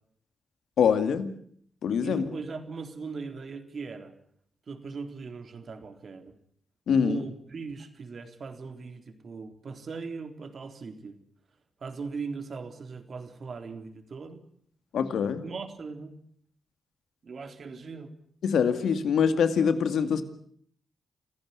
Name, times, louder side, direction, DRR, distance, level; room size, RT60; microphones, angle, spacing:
voice 1, 0.8-1.3 1.8-2.2 6.9-7.2 14.9-15.4 18.4-20.2, left 7 dB, 80° left, 10 dB, 2.2 m, -24 dB
voice 2, 2.0-4.1 4.7-6.3 7.0-11.2 11.8-14.4 15.4-16.1 17.2-18.1, right 4 dB, 60° right, 7 dB, 3.8 m, -39 dB
27.5 x 15.5 x 10.0 m, 0.64 s
cardioid pair, 55°, 0 cm